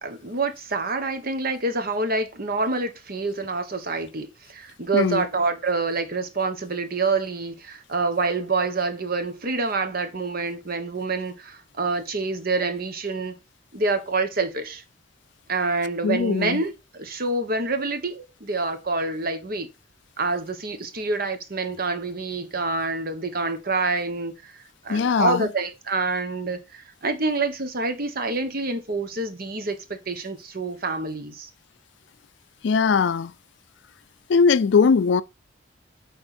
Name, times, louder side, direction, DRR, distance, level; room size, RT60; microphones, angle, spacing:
voice 1, 0.0-13.3 13.7-14.8 15.5-19.7 20.2-24.6 24.8-31.5, right 3 dB, 50° right, 1.3 m, -27 dB
voice 2, 4.9-5.2 16.0-16.6 24.9-25.5 32.6-33.3 34.3-35.2, left 5 dB, 65° left, 0.4 m, -20 dB
9.1 x 3.7 x 4.3 m
head